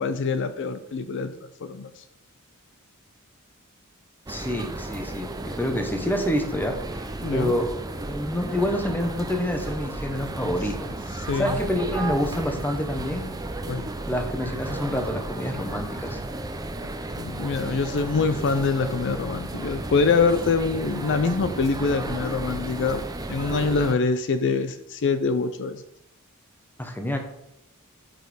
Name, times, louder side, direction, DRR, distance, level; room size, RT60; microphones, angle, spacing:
voice 1, 0.0-1.3 1.6-2.0 7.2-7.5 11.3-11.6 13.7-13.9 17.2-25.8, left 4 dB, 55° left, 10 dB, 0.4 m, -25 dB
voice 2, 4.3-7.0 7.3-7.8 8.1-13.3 14.1-16.2 26.8-27.2, left 1 dB, 10° left, 5 dB, 0.9 m, -28 dB
sound 1, 4.3-23.9, right 2 dB, 15° right, 0.5 m, -33 dB
6.2 x 5.2 x 6.3 m, 0.81 s
head